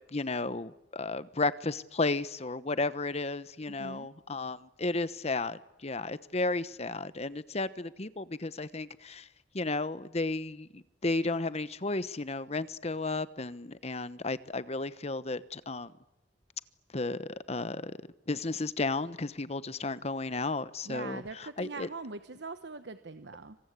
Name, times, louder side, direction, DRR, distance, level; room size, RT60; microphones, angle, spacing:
voice 1, 0.1-9.3 9.5-15.9 16.9-17.9 18.3-21.9, left 3 dB, 35° left, 1.0 m, -33 dB
voice 2, 3.7-4.1 20.8-23.6, right 3 dB, 80° right, 1.2 m, -42 dB
26.0 x 26.0 x 8.3 m
head